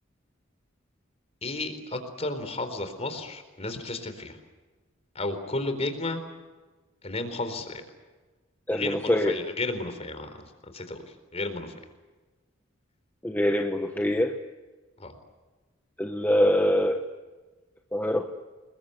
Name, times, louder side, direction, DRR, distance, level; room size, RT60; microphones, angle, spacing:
voice 1, 1.4-4.4 5.1-6.2 7.0-7.8 8.7-11.7 15.0-15.1, left 2 dB, 30° left, 8 dB, 4.2 m, -33 dB
voice 2, 8.7-9.3 13.2-14.3 16.0-17.0 17.9-18.3, left 1 dB, 10° left, 5 dB, 1.2 m, -24 dB
29.0 x 22.0 x 8.2 m, 1.3 s
head